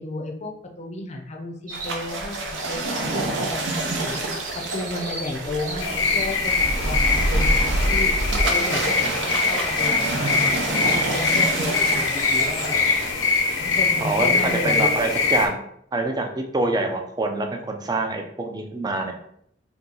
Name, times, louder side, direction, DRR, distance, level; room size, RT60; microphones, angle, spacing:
voice 1, 0.0-4.2 4.7-8.1 8.5-12.9 13.6-14.9, left 2 dB, 40° left, 3 dB, 0.5 m, -33 dB
sound 1, 1.7-2.2 2.6-6.5 10.0-13.1, right 2 dB, 50° right, 1.0 m, -39 dB
sound 2, 1.7-13.1, right 2 dB, 80° right, 0.6 m, -27 dB
sound 3, 5.8-15.5, left 4 dB, 80° left, 0.6 m, -23 dB
voice 2, 14.0-14.3 14.6-15.6 15.9-19.1, right 2 dB, 20° right, 4 dB, 0.4 m, -25 dB
2.8 x 2.3 x 3.7 m, 0.70 s
head